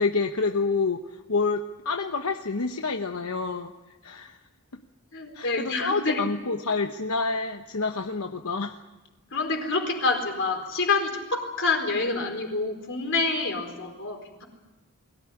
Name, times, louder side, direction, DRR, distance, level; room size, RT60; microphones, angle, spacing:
voice 1, 0.0-3.7 4.0-4.4 5.3-8.8, left 4 dB, 85° left, 5 dB, 1.1 m, -28 dB
voice 2, 5.1-6.2 9.3-14.4, left 3 dB, 60° left, 3 dB, 4.4 m, -27 dB
22.5 x 17.0 x 9.9 m, 1.1 s
head